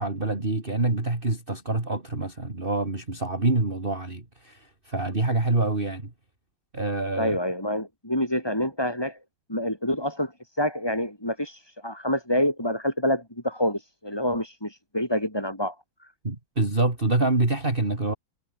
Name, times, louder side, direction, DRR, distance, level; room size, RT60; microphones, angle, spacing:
voice 1, 0.0-6.1 6.7-7.4 16.2-18.1, right 2 dB, 25° right, 3.3 m, -26 dB
voice 2, 7.2-9.2 9.5-15.7, left 1 dB, 10° left, 6.1 m, -27 dB
omnidirectional pair, 2.0 m